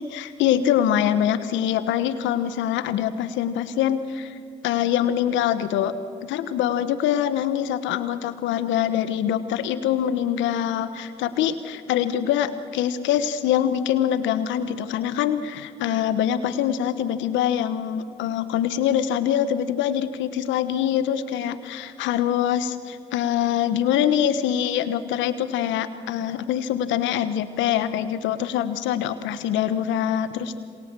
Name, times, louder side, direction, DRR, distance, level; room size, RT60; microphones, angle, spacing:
voice 1, 0.0-4.3 4.6-30.6, left 10 dB, 80° left, 12 dB, 1.3 m, -24 dB
28.0 x 26.5 x 7.6 m, 2.3 s
hypercardioid pair, 45°, 19 cm